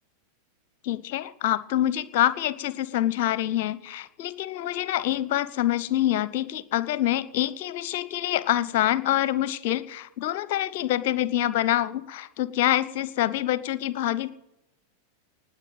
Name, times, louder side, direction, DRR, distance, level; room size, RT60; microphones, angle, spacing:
voice 1, 0.8-14.3, left 13 dB, 50° left, 17 dB, 0.9 m, -26 dB
19.5 x 7.9 x 9.0 m, 0.88 s
figure-of-eight pair, 90°, 0 cm